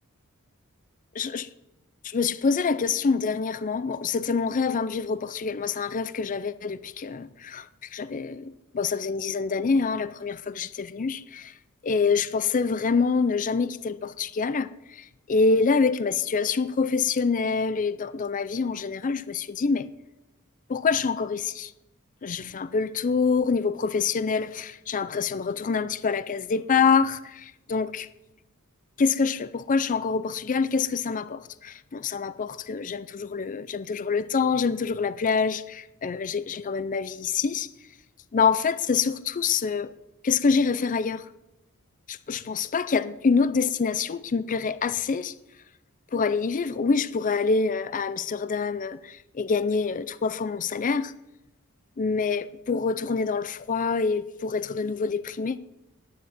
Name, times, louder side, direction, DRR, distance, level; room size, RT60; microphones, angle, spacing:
voice 1, 1.2-1.5 2.0-7.7 7.9-11.5 11.8-19.9 20.7-21.7 22.2-28.1 29.0-37.7 38.3-39.9 40.2-41.3 42.1-45.3 46.1-51.1 52.0-55.6, left 5 dB, 35° left, 0.4 m, -26 dB
11.0 x 9.3 x 7.4 m
head